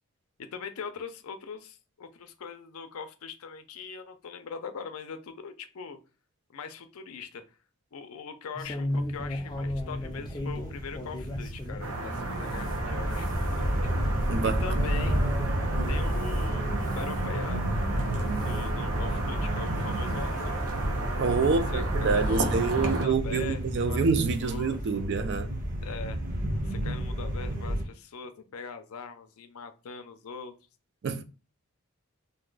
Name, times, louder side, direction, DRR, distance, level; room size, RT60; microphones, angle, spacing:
voice 1, 0.4-6.0 6.5-7.4 7.9-13.3 13.6-13.9 14.4-15.2 15.9-17.7 18.4-20.7 21.4-24.0 24.4-24.8 25.8-26.2 26.6-30.5, left 5 dB, 85° left, 0.5 m, -41 dB
sound 1, 8.6-11.9 12.3-16.5 16.8-17.2 17.8-18.1 18.4-18.7 19.3-19.4 19.7-19.8 21.0-21.1 21.8-22.7 23.8-24.0 24.3-24.4 24.8-24.9, left 1 dB, 20° left, 0.4 m, -37 dB
sound 2, 8.9-27.8, right 1 dB, 40° right, 0.8 m, -31 dB
sound 3, 11.8-23.1, right 2 dB, 90° right, 0.7 m, -34 dB
voice 2, 14.3-14.6 21.2-25.5 31.0-31.2, right 4 dB, 55° right, 0.4 m, -27 dB
2.7 x 2.2 x 3.8 m
head